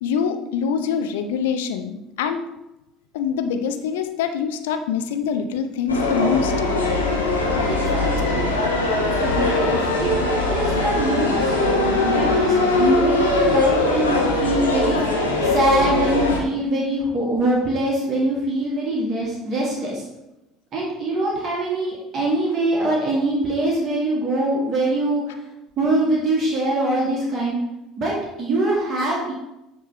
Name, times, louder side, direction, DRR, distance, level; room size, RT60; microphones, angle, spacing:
voice 1, 0.0-2.4 3.1-6.5, left 6 dB, 70° left, 7 dB, 0.5 m, -24 dB
sound 1, 5.9-16.4, left 2 dB, 85° left, 0.9 m, -20 dB
voice 2, 7.7-8.4 8.9-10.1 10.5-11.7 12.0-20.0 20.7-25.2 25.8-27.6 27.9-28.1 28.4-29.3, right 2 dB, 45° right, -4 dB, 1.6 m, -23 dB
9.4 x 3.2 x 3.3 m, 0.91 s
figure-of-eight pair, 65°, 0 cm